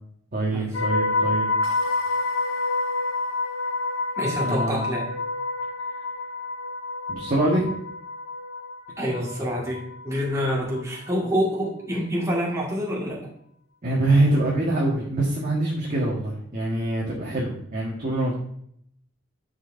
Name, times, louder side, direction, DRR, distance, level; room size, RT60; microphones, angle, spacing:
voice 1, 0.3-1.5 4.2-4.9 7.1-7.6 13.8-18.4, right 2 dB, 40° right, -4 dB, 1.5 m, -24 dB
sound 1, 0.7-10.8 11.1-11.4, left 3 dB, 75° left, 0.9 m, -28 dB
voice 2, 4.2-5.0 9.0-13.2, equal, 15° right, -5 dB, 1.9 m, -27 dB
10.5 x 5.7 x 2.7 m, 0.69 s
head